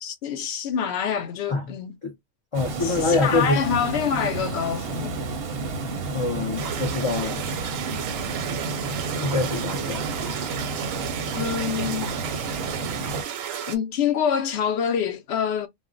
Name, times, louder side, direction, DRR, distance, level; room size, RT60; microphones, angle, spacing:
voice 1, 0.0-1.9 2.8-5.2 11.3-12.1 13.7-15.7, left 8 dB, 60° left, 0.8 m, -26 dB
voice 2, 2.5-3.6 6.1-7.4 9.2-10.1, left 3 dB, 40° left, 0.4 m, -25 dB
Water, 2.5-13.2, right 3 dB, 60° right, 0.7 m, -31 dB
sound 1, 6.6-13.8, right 9 dB, 90° right, 1.0 m, -33 dB
2.4 x 2.1 x 3.6 m
omnidirectional pair, 1.4 m